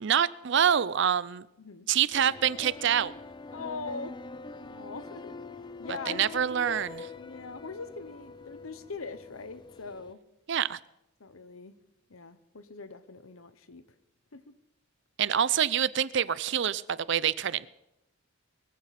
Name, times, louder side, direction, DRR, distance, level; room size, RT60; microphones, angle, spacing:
voice 1, 0.0-1.4 1.9-3.1 5.9-7.1 10.5-10.8 15.2-17.7, right 8 dB, 60° right, 19 dB, 0.5 m, -26 dB
sound 1, 2.1-10.1, left 3 dB, 20° left, 0.5 m, -44 dB
voice 2, 3.5-4.1 4.4-5.4 5.8-6.4 7.1-10.2 11.2-11.8 12.1-13.8 14.3-14.5, left 4 dB, 85° left, 13 dB, 1.0 m, -42 dB
22.5 x 15.0 x 4.2 m, 0.87 s
head